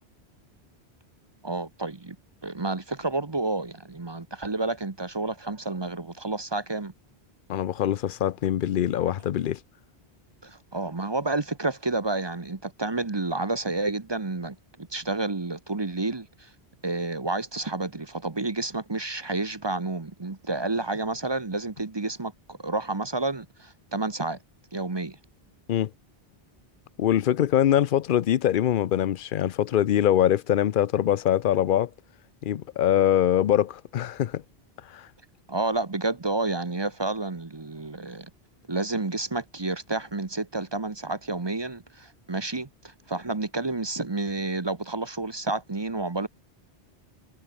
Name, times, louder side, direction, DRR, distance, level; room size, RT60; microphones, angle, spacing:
voice 1, 1.4-2.2 2.4-6.9 10.4-16.5 16.8-24.4 24.7-25.2 35.5-38.3 38.7-46.3, right 2 dB, 25° right, 1.0 m, -30 dB
voice 2, 7.5-9.6 25.7-25.9 27.0-31.9 32.4-34.4 34.9-35.1, left 11 dB, 60° left, 0.7 m, -23 dB
omnidirectional pair, 1.1 m